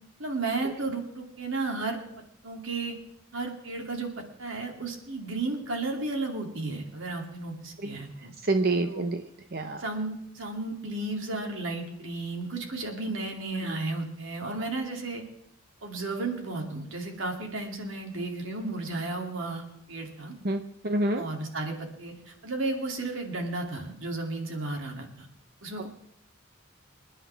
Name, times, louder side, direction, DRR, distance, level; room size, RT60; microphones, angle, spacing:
voice 1, 0.2-2.0 2.4-3.0 3.3-4.1 4.4-8.3 8.8-9.0 9.8-15.2 15.8-20.4 21.1-25.3 25.6-25.9, right 2 dB, 65° right, 2 dB, 2.7 m, -33 dB
voice 2, 8.5-9.2 9.5-9.8 13.6-13.7 20.4-21.2, right 2 dB, 50° right, 6 dB, 0.8 m, -27 dB
27.0 x 10.0 x 3.5 m, 0.72 s
head